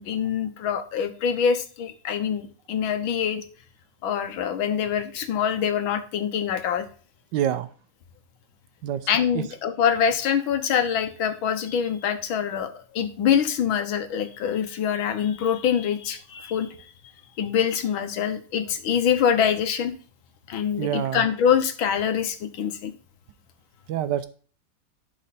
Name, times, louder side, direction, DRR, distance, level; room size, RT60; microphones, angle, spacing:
voice 1, 0.0-3.4 4.0-6.8 9.1-16.7 17.4-19.9 20.5-22.9, left 8 dB, 85° left, 9 dB, 1.8 m, -25 dB
voice 2, 7.3-7.7 8.8-9.1 9.3-9.4 20.8-21.3 23.9-24.3, right 10 dB, 70° right, 12 dB, 1.2 m, -26 dB
11.5 x 4.4 x 4.1 m, 0.40 s
omnidirectional pair, 2.1 m